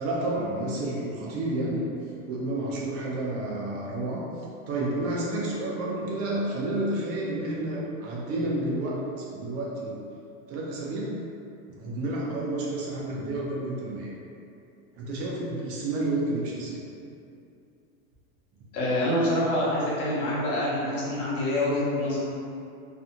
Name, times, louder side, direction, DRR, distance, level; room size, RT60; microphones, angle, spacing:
voice 1, 0.0-1.9 2.3-4.2 4.7-10.0 10.5-11.1 11.7-14.2 14.9-16.8, right 2 dB, 35° right, -4 dB, 0.5 m, -30 dB
voice 2, 18.7-22.2, left 1 dB, 80° left, -7 dB, 1.1 m, -26 dB
2.5 x 2.4 x 2.7 m, 2.5 s
supercardioid pair, 120°, 44 cm